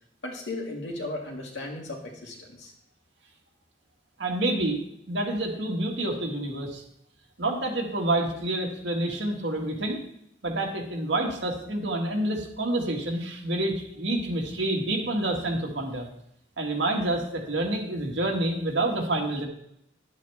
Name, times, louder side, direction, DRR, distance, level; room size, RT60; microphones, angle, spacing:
voice 1, 0.2-2.7, left 2 dB, 80° left, 0 dB, 2.2 m, -36 dB
voice 2, 4.2-4.8 5.1-6.8 7.4-10.0 10.4-16.1 16.6-19.5, right 1 dB, 80° right, 1 dB, 1.9 m, -28 dB
10.5 x 8.9 x 3.6 m, 0.73 s
head